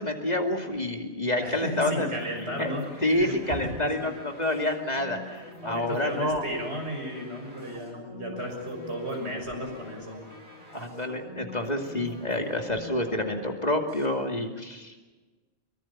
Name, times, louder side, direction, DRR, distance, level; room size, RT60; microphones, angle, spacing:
voice 1, 0.0-2.1 2.6-6.4 10.7-15.1, left 1 dB, 35° left, 3 dB, 2.7 m, -28 dB
sound 1, 1.4-14.1, left 1 dB, 45° right, 7.2 m, -46 dB
voice 2, 1.4-4.1 5.6-10.2, equal, 70° right, 2 dB, 6.8 m, -34 dB
23.5 x 23.5 x 7.4 m, 1.3 s
omnidirectional pair, 1.2 m